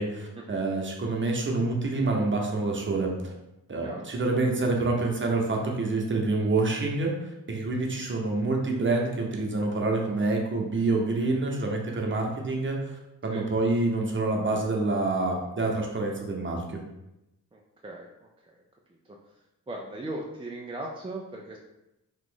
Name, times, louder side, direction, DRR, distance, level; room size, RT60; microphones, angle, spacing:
voice 1, 0.0-3.3 3.7-16.8, right 2 dB, 35° right, 0 dB, 0.9 m, -27 dB
voice 2, 17.5-18.6 18.9-19.3 19.7-21.6, right 1 dB, 15° right, -1 dB, 0.4 m, -39 dB
3.0 x 2.4 x 3.8 m, 0.92 s
cardioid pair, 65°, 35 cm